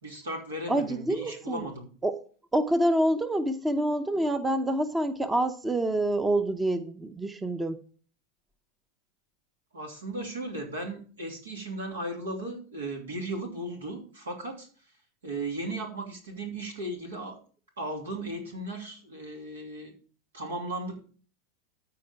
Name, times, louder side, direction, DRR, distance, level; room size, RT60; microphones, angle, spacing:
voice 1, 0.0-1.9 9.7-14.7 15.2-17.4 17.8-19.9 20.3-21.0, right 1 dB, 80° right, 2 dB, 3.0 m, -36 dB
voice 2, 0.7-1.7 2.0-2.2 2.5-7.8, right 1 dB, 10° right, 11 dB, 0.8 m, -27 dB
13.5 x 4.6 x 5.7 m, 0.41 s
hypercardioid pair, 90°, 0 cm